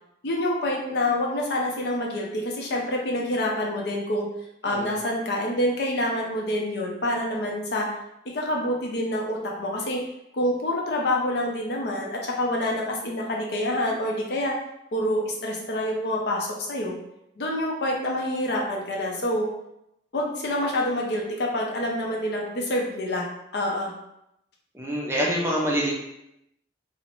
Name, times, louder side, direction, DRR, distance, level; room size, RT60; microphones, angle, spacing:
voice 1, 0.2-4.3 4.6-7.9 8.3-10.0 10.3-14.5 14.9-17.0 17.4-19.5 20.1-23.3 23.5-23.9, left 1 dB, 60° left, -1 dB, 0.5 m, -27 dB
voice 2, 24.7-25.9, equal, 15° right, -3 dB, 0.4 m, -26 dB
2.5 x 2.0 x 2.9 m, 0.82 s
head